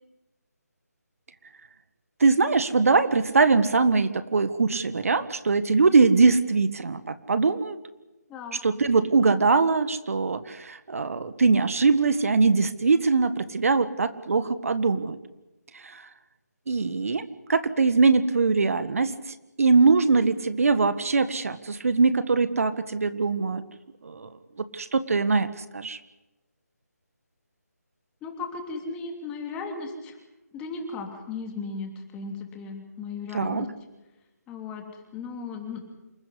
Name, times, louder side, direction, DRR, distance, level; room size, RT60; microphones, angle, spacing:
voice 1, 2.2-7.8 8.6-15.2 15.7-16.1 16.7-23.6 24.0-24.3 24.7-26.0 33.3-33.7, right 4 dB, 55° right, 12 dB, 1.7 m, -22 dB
voice 2, 8.3-8.6 28.2-30.2 30.5-33.7 34.5-35.9, left 4 dB, 10° left, 3 dB, 3.0 m, -36 dB
28.0 x 15.0 x 10.0 m, 1.0 s
figure-of-eight pair, 160°, 9 cm